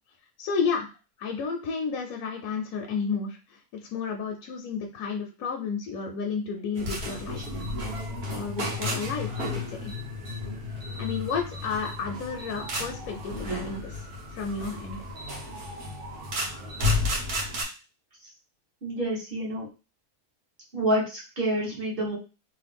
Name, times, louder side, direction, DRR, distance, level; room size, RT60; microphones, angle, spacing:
voice 1, 0.4-0.9 1.2-7.6 8.3-9.9 11.0-14.1 14.3-15.0, left 5 dB, 75° left, 1 dB, 1.0 m, -32 dB
sound 1, 6.7-17.6, left 2 dB, 80° right, 1.5 m, -32 dB
voice 2, 18.8-19.6 20.7-22.2, right 1 dB, 40° right, -5 dB, 1.4 m, -28 dB
3.1 x 2.5 x 3.3 m, 0.32 s
omnidirectional pair, 1.6 m